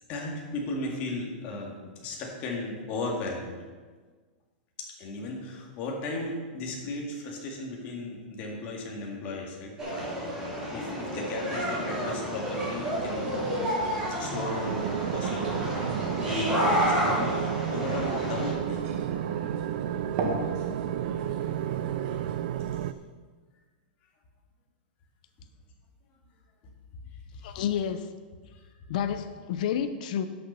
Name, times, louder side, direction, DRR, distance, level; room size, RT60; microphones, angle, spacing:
voice 1, 0.1-3.6 5.0-10.1 10.7-13.4 14.1-15.7 16.2-18.8 19.6-19.7 22.8-22.9 27.3-27.8 28.5-28.6, left 2 dB, 30° left, -1 dB, 2.1 m, -36 dB
sound 1, 9.8-18.5, equal, 10° right, 3.3 m, -30 dB
sound 2, 12.7-22.4, right 3 dB, 35° right, 1.5 m, -39 dB
sound 3, 14.6-22.9, right 11 dB, 60° right, 0.4 m, -32 dB
voice 2, 27.4-28.1 28.9-30.3, left 8 dB, 50° left, 9 dB, 0.6 m, -29 dB
11.5 x 6.8 x 5.6 m, 1.5 s
supercardioid pair, 165°, 5 cm